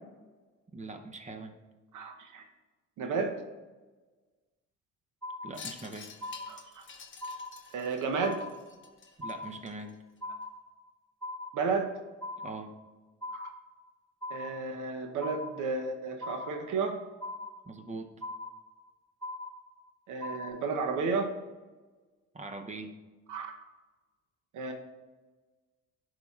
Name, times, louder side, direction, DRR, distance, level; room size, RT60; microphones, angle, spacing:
voice 1, 0.7-1.5 5.4-6.1 9.2-9.9 12.4-12.7 17.7-18.1 22.3-23.0, right 2 dB, 25° right, 7 dB, 0.7 m, -42 dB
voice 2, 1.9-2.5 3.0-3.3 6.5-6.8 7.7-8.5 11.5-11.9 13.3-13.5 14.3-17.0 20.1-21.3 23.3-23.5 24.5-24.7, right 4 dB, 80° right, 4 dB, 0.9 m, -32 dB
sound 1, 5.2-5.9 6.2-6.9 7.2-7.9 8.2-8.9 9.2-9.9 10.2-10.9 11.2-11.9 12.2-12.9 13.2-13.9 14.2-14.9 15.2-15.9 16.2-16.9 17.2-17.9 18.2-18.9 19.2-19.9 20.2-20.5, left 2 dB, 10° left, 1.9 m, -41 dB
Wind chime, 5.5-10.2, left 6 dB, 40° left, 1.0 m, -49 dB
11.0 x 4.9 x 2.4 m, 1.3 s
cardioid pair, 90°, 30 cm